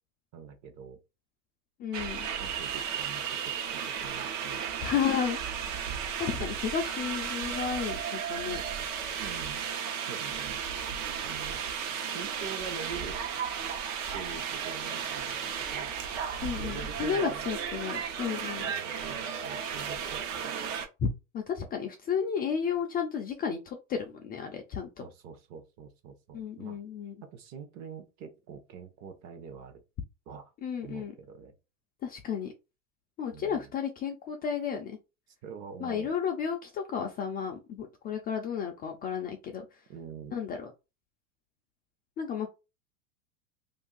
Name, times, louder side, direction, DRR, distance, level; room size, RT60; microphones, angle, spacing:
voice 1, 0.3-1.0 2.4-4.6 9.2-9.6 10.1-10.7 11.2-11.6 11.9-13.2 14.1-15.9 16.6-17.5 18.5-20.5 25.0-26.8 27.2-29.8 30.3-30.5 30.8-31.5 33.3-33.7 35.4-36.1 39.9-40.4, right 6 dB, 40° right, 0.8 m, -45 dB
voice 2, 1.8-2.3 4.8-5.4 6.2-8.6 16.4-18.7 21.0-21.1 21.3-25.1 26.3-27.2 30.6-31.1 32.0-32.5 33.2-35.0 35.8-39.8 40.3-40.7 42.2-42.5, left 7 dB, 25° left, 0.4 m, -32 dB
sound 1, 1.9-20.9, right 7 dB, 65° right, 1.0 m, -34 dB
2.6 x 2.5 x 3.8 m
supercardioid pair, 120°, 41 cm